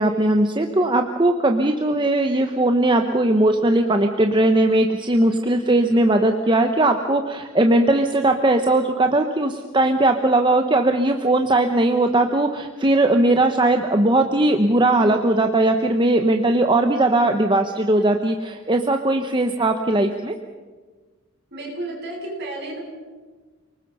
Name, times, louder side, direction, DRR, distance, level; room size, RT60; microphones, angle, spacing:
voice 1, 0.0-20.3, right 2 dB, 20° right, 5 dB, 0.9 m, -19 dB
voice 2, 21.5-22.8, right 2 dB, 50° right, -2 dB, 7.5 m, -32 dB
29.0 x 19.5 x 5.5 m, 1.4 s
head